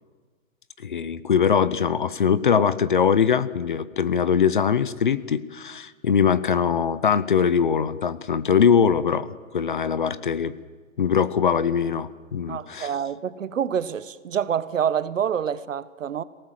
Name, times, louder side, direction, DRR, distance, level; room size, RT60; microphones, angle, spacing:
voice 1, 0.8-9.3 9.5-10.5 11.0-12.9, left 7 dB, 40° left, 0.7 m, -22 dB
voice 2, 12.5-16.2, right 8 dB, 65° right, 1.2 m, -27 dB
26.0 x 18.0 x 7.5 m
hypercardioid pair, 175°, 41 cm